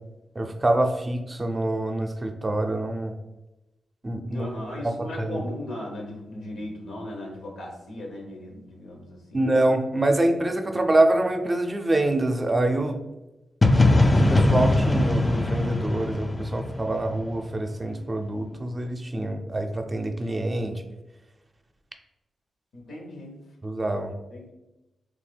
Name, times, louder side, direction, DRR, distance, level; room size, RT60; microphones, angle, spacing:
voice 1, 0.4-3.1 4.0-4.5 4.8-5.4 9.3-13.0 13.9-20.8 23.6-24.1, right 1 dB, 30° right, 4 dB, 0.5 m, -25 dB
voice 2, 4.3-9.5 22.7-23.3 24.3-24.5, left 1 dB, 85° left, 0 dB, 0.9 m, -37 dB
sound 1, 13.6-17.5, left 2 dB, 30° left, 0.3 m, -21 dB
3.2 x 2.2 x 3.4 m, 0.98 s
cardioid pair, 55°, 0 cm